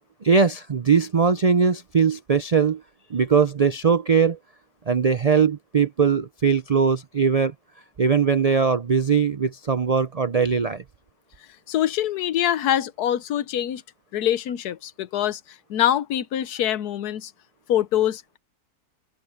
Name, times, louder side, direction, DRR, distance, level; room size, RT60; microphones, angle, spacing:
voice 1, 0.2-2.8 3.1-4.4 4.9-7.5 8.0-10.8, right 6 dB, 75° right, 0.3 m, -20 dB
voice 2, 11.7-13.8 14.1-15.4 15.7-17.3 17.7-18.4, left 11 dB, 90° left, 1.3 m, -24 dB
open air
omnidirectional pair, 1.6 m